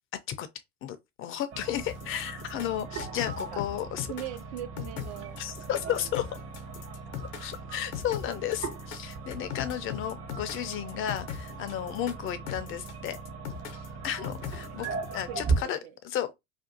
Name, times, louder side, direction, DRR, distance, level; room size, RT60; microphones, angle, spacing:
voice 1, 0.8-4.1 5.4-6.2 7.4-13.2 14.0-15.8 16.0-16.3, left 10 dB, 35° left, 0.4 m, -33 dB
sound 1, 1.5-15.6, right 4 dB, 40° right, 0.8 m, -38 dB
sound 2, 1.9-15.1, left 10 dB, 80° left, 0.6 m, -39 dB
voice 2, 4.1-5.4 5.7-6.1 15.3-15.9, right 11 dB, 65° right, 0.5 m, -40 dB
2.5 x 2.3 x 2.5 m
hypercardioid pair, 80°, 37 cm